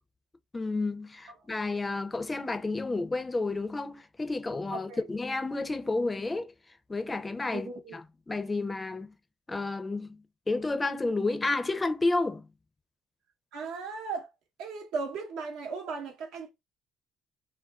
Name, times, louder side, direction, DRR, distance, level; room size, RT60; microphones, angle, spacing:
voice 1, 0.5-6.5 6.9-8.0 8.3-9.1 9.5-12.4, left 3 dB, 25° left, 0.4 m, -31 dB
voice 2, 7.5-8.0 13.5-14.3 14.6-16.5, right 4 dB, 75° right, 0.7 m, -37 dB
2.3 x 2.2 x 2.3 m
hypercardioid pair, 60°, 0 cm